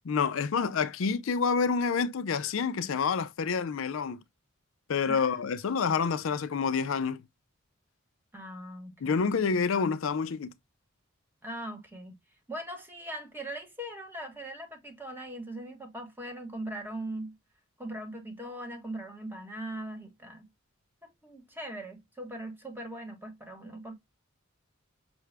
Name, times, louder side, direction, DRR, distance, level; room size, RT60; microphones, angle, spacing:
voice 1, 0.0-4.2 4.9-7.2 9.0-10.5, left 5 dB, 65° left, 0.4 m, -28 dB
voice 2, 5.1-5.4 8.3-9.3 11.4-12.1 12.5-17.3 17.8-20.5 21.0-23.9, right 1 dB, 10° right, 1.1 m, -40 dB
6.0 x 2.2 x 3.2 m
head